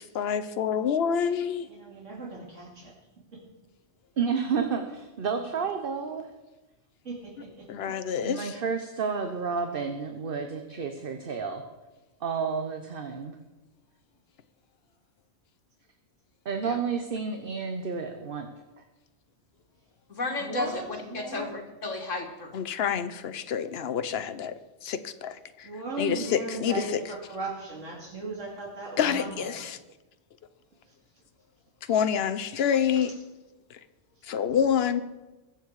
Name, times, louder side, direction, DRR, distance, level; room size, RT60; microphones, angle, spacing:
voice 1, 0.1-1.7 7.7-8.6 22.5-24.5 24.8-25.7 26.0-27.0 29.0-29.8 31.9-33.1 33.7-33.8 34.2-35.0, left 8 dB, 60° left, 10 dB, 1.0 m, -27 dB
voice 2, 1.7-2.9 3.3-3.4 7.0-7.7 20.4-21.5 25.6-29.6 30.9-31.0 33.0-33.1 34.2-34.3, right 2 dB, 80° right, -2 dB, 2.9 m, -37 dB
voice 3, 4.2-6.2 8.2-11.6 12.2-13.4 16.4-18.5, right 5 dB, 50° right, 6 dB, 1.1 m, -30 dB
voice 4, 20.1-20.8 21.1-22.5, left 3 dB, 85° left, 3 dB, 2.2 m, -33 dB
22.0 x 7.5 x 4.8 m, 1.1 s
omnidirectional pair, 1.3 m